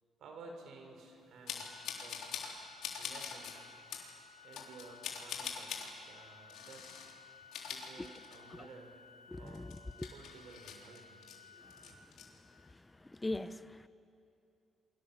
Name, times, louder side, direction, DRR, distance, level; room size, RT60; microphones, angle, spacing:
voice 1, 0.2-2.2 3.0-4.0 4.4-7.0 7.7-9.0 9.4-9.7 10.1-11.2, right 3 dB, 70° right, 5.2 m, -54 dB
sound 1, 1.5-2.5 2.8-3.5 3.9-4.1 4.5-5.9 6.5-7.1 7.4-8.6 8.9-9.0 9.5-11.4 11.7-12.2, left 7 dB, 80° left, 3.7 m, -43 dB
Organ, 1.6-12.6, left 5 dB, 55° left, 2.6 m, -58 dB
voice 2, 9.3-10.1 13.0-13.9, left 2 dB, 15° left, 0.9 m, -41 dB
28.5 x 23.5 x 7.4 m
cardioid pair, 90°, 0 cm